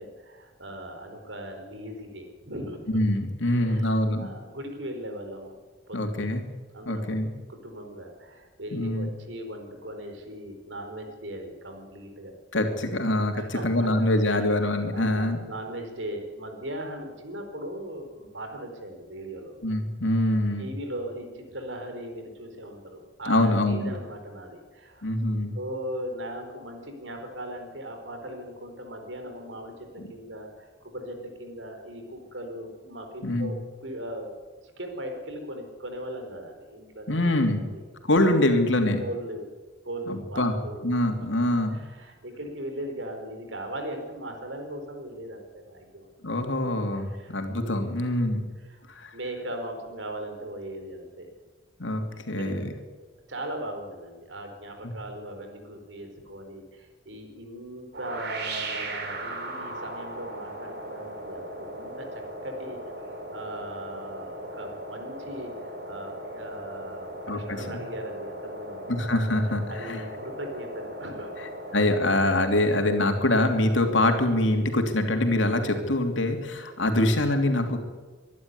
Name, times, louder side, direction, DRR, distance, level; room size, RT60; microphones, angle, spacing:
voice 1, 0.0-3.0 3.4-5.6 5.9-6.3 6.7-7.1 7.5-12.3 13.3-13.9 14.3-14.4 14.9-19.6 20.6-25.1 25.5-33.6 33.8-34.3 34.8-37.8 39.0-39.5 39.8-40.8 41.4-46.1 46.9-47.3 47.8-48.1 48.6-48.8 49.1-51.3 52.1-52.6 53.3-62.8 63.1-68.9 69.7-71.8, right 1 dB, 80° right, 5 dB, 4.5 m, -39 dB
voice 2, 2.9-4.3 5.9-6.4 6.9-7.3 8.7-9.1 12.5-15.4 19.6-20.7 23.3-23.9 25.0-25.6 33.2-33.5 37.1-37.6 38.0-39.0 40.1-40.5 40.8-41.8 46.2-48.4 48.9-49.1 51.8-52.7 67.3-67.8 68.9-70.0 71.7-77.8, left 1 dB, 85° left, 5 dB, 3.1 m, -24 dB
sound 1, 57.9-76.8, right 1 dB, 65° right, 3.6 m, -39 dB
23.5 x 11.5 x 9.7 m, 1.3 s
head